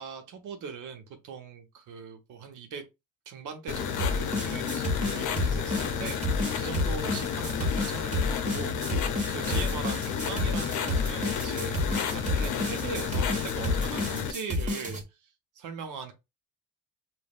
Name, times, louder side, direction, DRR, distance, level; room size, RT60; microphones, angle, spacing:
voice 1, 0.0-2.9 3.3-15.3 15.6-16.1, right 6 dB, 85° right, 1.0 m, -40 dB
sound 1, 3.7-14.3, left 7 dB, 85° left, 0.7 m, -31 dB
sound 2, 4.0-15.0, left 1 dB, 25° right, 1.5 m, -30 dB
5.3 x 2.6 x 2.4 m
cardioid pair, 90°, 30 cm